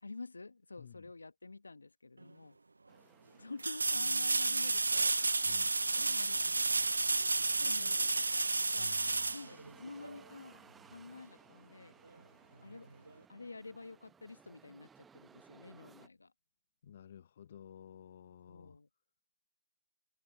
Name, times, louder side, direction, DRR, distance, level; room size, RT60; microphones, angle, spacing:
voice 1, 0.0-2.6 3.4-5.5 5.9-6.8 7.1-8.9 9.3-12.0 12.6-12.9 13.3-16.3 18.5-18.9, left 3 dB, 80° left, 1.1 m, -49 dB
voice 2, 0.8-1.1 5.4-5.7 8.8-9.3 16.8-18.8, left 9 dB, 45° left, 0.8 m, -53 dB
sound 1, 2.2-2.3 3.6-10.2 13.1-13.2, right 3 dB, 85° right, 0.3 m, -31 dB
sound 2, 2.9-16.1, right 6 dB, 10° right, 1.0 m, -62 dB
figure-of-eight pair, 145°, 0 cm